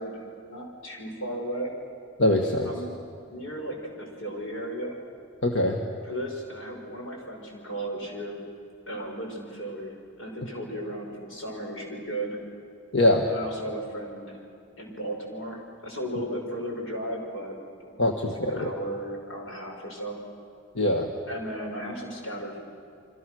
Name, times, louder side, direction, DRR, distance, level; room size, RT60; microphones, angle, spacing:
voice 1, 0.0-1.7 2.6-2.9 3.3-5.0 6.0-8.4 8.9-12.4 13.2-14.4 14.8-17.5 17.8-20.2 21.3-22.6, right 1 dB, 85° left, 1 dB, 6.1 m, -35 dB
voice 2, 2.2-2.7 5.4-5.8 12.9-13.2 18.0-18.7 20.8-21.1, left 1 dB, 60° left, 2 dB, 1.7 m, -22 dB
29.0 x 25.0 x 6.4 m, 2.4 s
head